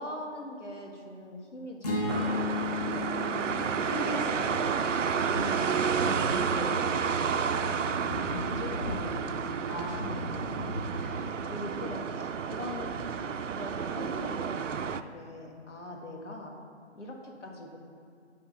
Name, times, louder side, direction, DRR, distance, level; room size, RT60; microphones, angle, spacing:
voice 1, 0.0-2.8 5.3-6.8 7.2-7.9 8.3-9.8 10.4-10.6 10.9-13.0 13.4-16.5 16.9-17.8, left 1 dB, 75° left, 0 dB, 1.7 m, -42 dB
sound 1, 1.8-6.1, left 3 dB, 35° left, 1.3 m, -35 dB
sound 2, 2.1-15.0, right 6 dB, 90° right, 0.5 m, -31 dB
voice 2, 3.4-4.8 9.6-10.2 10.9-11.2, left 1 dB, 15° left, -7 dB, 1.4 m, -38 dB
sound 3, 5.3-12.1, left 1 dB, 55° left, 1.2 m, -40 dB
10.5 x 3.6 x 6.8 m, 2.4 s
figure-of-eight pair, 155°, 36 cm